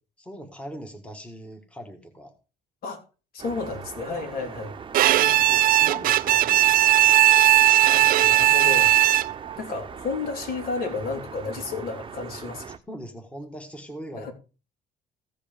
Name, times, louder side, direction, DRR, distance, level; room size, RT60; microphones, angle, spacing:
voice 1, 0.2-2.3 4.4-4.5 4.9-6.9 12.6-14.3, equal, 5° left, 2.0 m, -41 dB
voice 2, 3.3-4.8 7.8-9.3 9.6-12.7 14.1-14.3, left 4 dB, 65° left, 3.5 m, -32 dB
sound 1, 3.4-12.8, right 6 dB, 30° right, 0.9 m, -41 dB
Bowed string instrument, 4.9-9.5, right 15 dB, 60° right, 0.4 m, -18 dB
15.0 x 5.2 x 5.3 m
cardioid pair, 110°, 17 cm